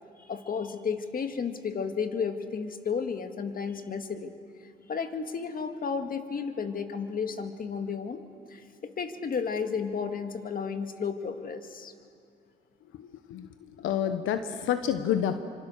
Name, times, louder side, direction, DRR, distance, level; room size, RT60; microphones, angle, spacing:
voice 1, 0.2-4.3 4.9-8.2 8.5-11.9, left 6 dB, 45° left, 7 dB, 2.0 m, -33 dB
voice 2, 12.9-13.5 13.8-15.4, left 9 dB, 85° left, 9 dB, 1.1 m, -29 dB
27.5 x 25.5 x 6.6 m, 2.4 s
cardioid pair, 90°, 20 cm